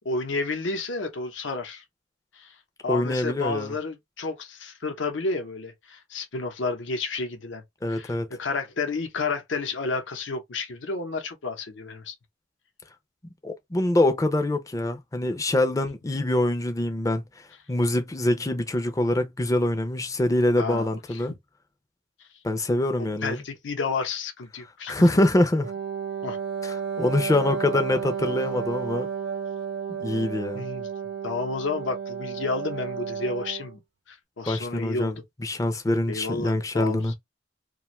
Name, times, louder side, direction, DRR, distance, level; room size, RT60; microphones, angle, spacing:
voice 1, 0.0-1.8 2.3-2.5 2.8-7.6 7.9-12.1 20.6-21.2 23.2-25.1 26.2-26.4 28.3-28.7 30.1-30.9 31.2-33.8 34.1-35.2 36.1-37.1, left 3 dB, 75° left, 0.7 m, -31 dB
voice 2, 2.9-3.7 7.8-8.3 13.4-17.2 17.7-21.3 22.4-23.4 24.9-25.7 26.6-29.1 30.0-30.6 34.5-37.1, left 1 dB, 15° left, 0.4 m, -24 dB
Wind instrument woodwind instrument, 25.6-33.8, right 7 dB, 90° right, 0.5 m, -32 dB
2.5 x 2.3 x 3.0 m
head